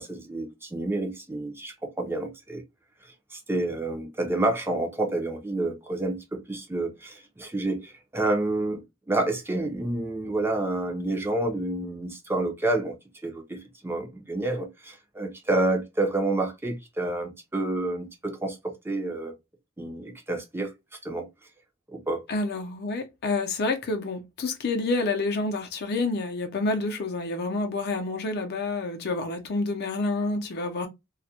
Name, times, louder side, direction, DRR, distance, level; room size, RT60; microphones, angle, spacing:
voice 1, 0.0-2.6 3.3-8.8 9.1-12.9 13.2-19.3 19.8-20.7 21.0-21.3 21.9-22.2, right 2 dB, 10° right, 0.4 m, -29 dB
voice 2, 22.3-30.9, left 3 dB, 55° left, 0.5 m, -28 dB
2.3 x 2.1 x 2.7 m
head